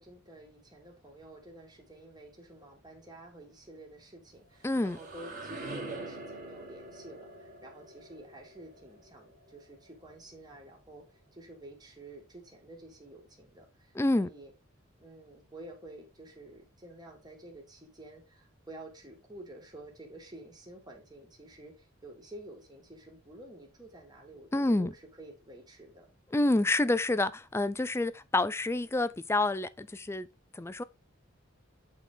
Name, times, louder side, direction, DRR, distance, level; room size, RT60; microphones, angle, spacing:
voice 1, 0.0-11.1 11.3-14.5 15.0-26.1, right 1 dB, 20° right, 1.9 m, -50 dB
sound 1, 4.3-10.1, right 2 dB, 50° right, 1.9 m, -45 dB
voice 2, 4.6-5.0 13.9-14.3 24.5-24.9 26.3-30.3 30.5-30.8, left 2 dB, 15° left, 0.3 m, -28 dB
8.2 x 4.2 x 3.6 m
head